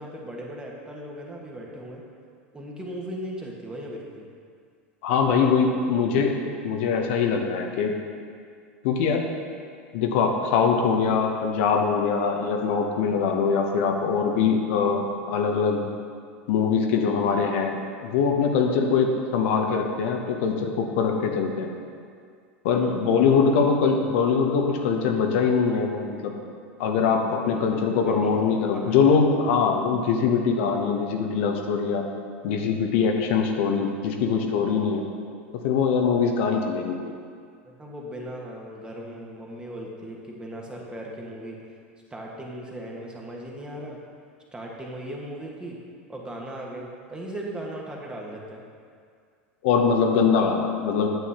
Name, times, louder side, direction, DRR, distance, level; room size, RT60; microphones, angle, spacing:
voice 1, 0.0-2.1 2.5-4.3 22.7-23.0 27.4-27.6 28.0-28.4 28.7-29.2 37.6-41.6 42.1-44.0 44.5-45.8 46.1-48.6, right 1 dB, 15° right, -2 dB, 1.4 m, -38 dB
voice 2, 5.0-6.4 6.6-8.0 8.8-9.3 9.9-15.9 16.5-17.8 18.0-21.7 22.6-26.3 26.8-32.1 32.4-35.0 35.6-37.1 49.6-51.1, left 5 dB, 65° left, 3 dB, 0.8 m, -23 dB
9.0 x 7.2 x 2.9 m, 2.2 s
hypercardioid pair, 95°, 7 cm